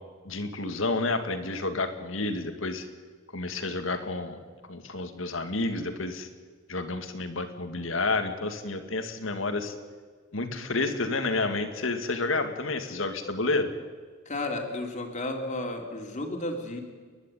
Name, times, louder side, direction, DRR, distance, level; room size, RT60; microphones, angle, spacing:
voice 1, 0.2-2.9 3.3-4.4 4.7-6.3 6.7-9.7 10.3-13.7, left 3 dB, 70° left, 7 dB, 2.1 m, -30 dB
voice 2, 14.2-16.8, left 2 dB, 35° left, 2 dB, 3.1 m, -33 dB
29.5 x 11.0 x 9.2 m, 1.5 s
head